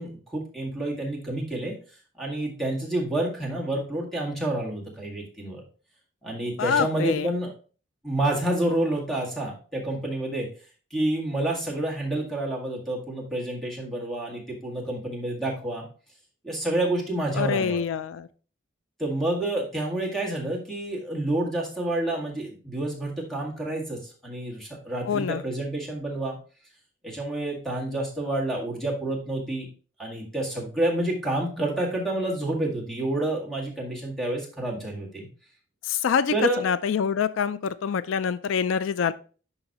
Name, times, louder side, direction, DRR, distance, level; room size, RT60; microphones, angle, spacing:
voice 1, 0.0-1.7 2.2-5.6 6.2-7.5 8.0-10.5 10.9-15.9 16.4-17.8 19.0-26.4 27.0-29.7 30.0-35.3 36.3-36.6, right 1 dB, ahead, -2 dB, 1.8 m, -29 dB
voice 2, 6.6-7.3 17.3-18.3 25.1-25.4 35.8-39.1, left 7 dB, 80° left, 15 dB, 0.4 m, -25 dB
11.0 x 4.0 x 2.9 m, 0.38 s
head